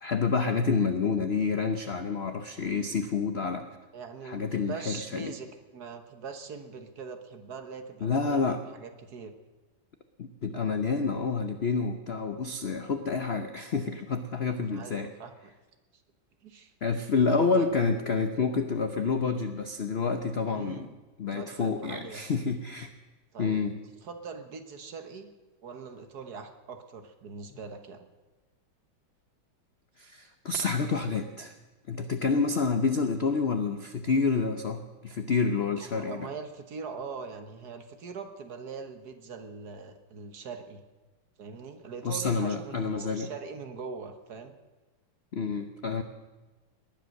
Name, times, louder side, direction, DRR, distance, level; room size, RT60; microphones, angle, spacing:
voice 1, 0.0-3.7 4.2-5.3 8.0-8.6 10.2-15.1 16.8-20.9 21.2-22.9 23.4-23.7 30.0-31.5 31.9-36.3 42.0-43.3 45.3-46.0, left 4 dB, 60° left, 8 dB, 0.6 m, -28 dB
voice 2, 3.9-9.3 14.7-15.5 16.4-16.7 17.3-17.7 20.5-20.9 21.3-22.2 23.3-23.6 24.0-25.3 25.6-28.1 35.8-40.8 41.4-44.6, right 5 dB, 55° right, 7 dB, 1.6 m, -42 dB
19.5 x 11.0 x 6.5 m, 1.2 s
omnidirectional pair, 2.2 m